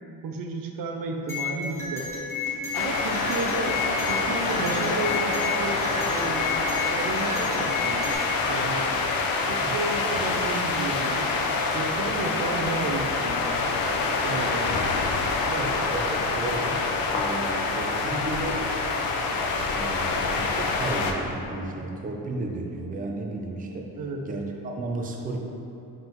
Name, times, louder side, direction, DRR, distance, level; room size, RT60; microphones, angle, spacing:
voice 1, 0.2-2.1 2.7-3.8 4.1-8.1 8.5-8.9 9.5-11.5 11.7-13.7 14.2-14.9 24.0-24.2, right 3 dB, 55° right, 3 dB, 0.7 m, -32 dB
sound 1, 1.3-8.1, left 3 dB, 5° left, 1.0 m, -32 dB
sound 2, 2.7-21.1, left 3 dB, 60° left, 0.6 m, -26 dB
voice 2, 9.4-9.7 10.1-10.2 14.2-14.7 15.4-18.7 19.7-23.9 24.2-25.4, right 2 dB, 20° right, 0 dB, 0.5 m, -34 dB
7.4 x 5.4 x 3.0 m, 2.8 s
cardioid pair, 175°, 40 cm